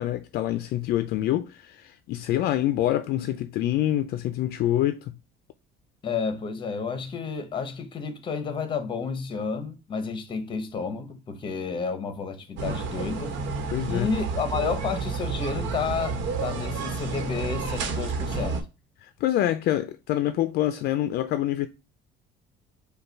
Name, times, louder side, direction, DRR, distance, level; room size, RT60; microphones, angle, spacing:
voice 1, 0.0-5.1 13.7-14.1 19.0-21.7, left 13 dB, 55° left, 0.4 m, -26 dB
voice 2, 6.0-13.4 13.9-18.6, left 5 dB, 25° left, 0.8 m, -31 dB
sound 1, 12.6-18.6, right 4 dB, 85° right, 1.1 m, -30 dB
5.4 x 2.3 x 4.4 m
cardioid pair, 170°, 19 cm